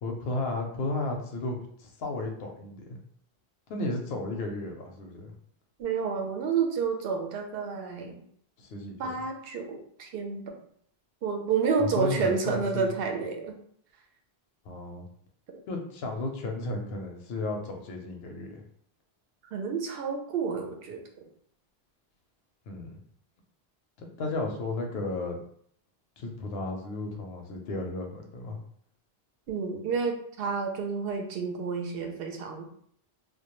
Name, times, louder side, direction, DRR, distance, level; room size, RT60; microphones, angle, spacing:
voice 1, 0.0-3.0 3.7-5.3 8.6-9.1 11.8-12.9 14.7-15.0 15.7-18.6 22.7-23.0 24.2-25.4 26.2-28.6, left 2 dB, 75° left, 3 dB, 0.8 m, -34 dB
voice 2, 5.8-8.2 9.0-10.5 11.2-13.5 19.5-21.0 29.5-32.7, right 5 dB, 70° right, 3 dB, 0.7 m, -30 dB
2.2 x 2.2 x 2.9 m, 0.63 s
omnidirectional pair, 1.0 m